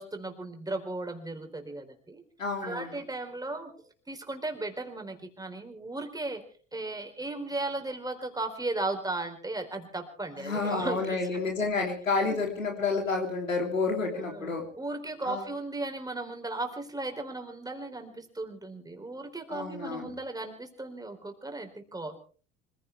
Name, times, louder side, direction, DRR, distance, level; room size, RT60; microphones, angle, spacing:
voice 1, 0.0-2.2 2.6-3.7 4.1-6.4 6.7-11.4 12.3-12.4 14.1-22.2, right 2 dB, 10° right, 4 dB, 4.4 m, -36 dB
voice 2, 2.4-3.0 10.4-14.6 15.2-15.4 19.5-20.1, left 4 dB, 85° left, 2 dB, 3.3 m, -30 dB
26.0 x 16.0 x 3.5 m, 0.40 s
figure-of-eight pair, 65°, 38 cm